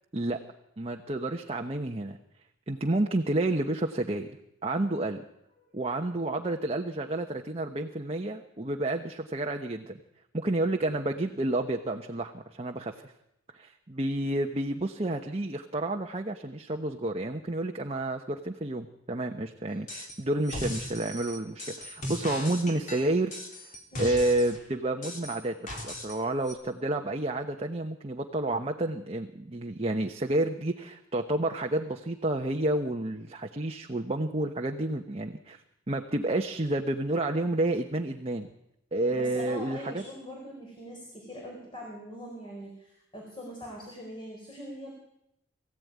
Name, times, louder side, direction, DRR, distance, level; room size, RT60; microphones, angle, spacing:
voice 1, 0.8-2.2 2.7-4.3 4.6-5.2 5.7-10.0 10.3-13.1 13.5-23.7 24.0-38.5 38.9-40.0, right 2 dB, 30° right, 3 dB, 1.1 m, -30 dB
sound 1, 19.9-20.2 20.4-24.6 25.0-26.2 26.4-26.5, left 1 dB, 40° left, 3.9 m, -38 dB
voice 2, 39.1-44.9, equal, 25° left, -1 dB, 4.7 m, -42 dB
23.5 x 15.5 x 9.5 m, 0.84 s
head